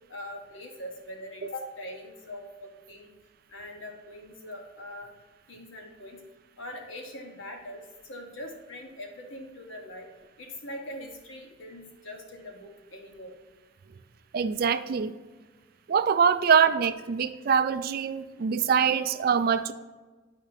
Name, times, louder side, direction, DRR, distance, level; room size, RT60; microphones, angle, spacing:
voice 1, 0.1-3.1 3.5-5.1 5.5-6.2 6.6-10.1 10.4-13.3 18.3-18.4, left 1 dB, 75° left, 2 dB, 1.2 m, -42 dB
voice 2, 14.3-15.1 15.9-19.7, right 6 dB, 50° right, 12 dB, 0.3 m, -24 dB
8.8 x 5.0 x 2.7 m, 1.3 s
head